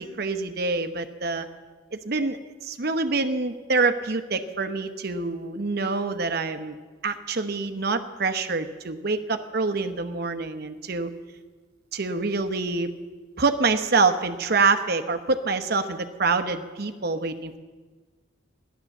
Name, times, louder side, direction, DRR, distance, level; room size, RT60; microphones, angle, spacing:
voice 1, 0.0-1.5 1.9-6.8 7.0-11.1 11.9-12.9 13.4-17.6, right 4 dB, 50° right, 8 dB, 0.9 m, -26 dB
14.5 x 11.0 x 7.1 m, 1.4 s
head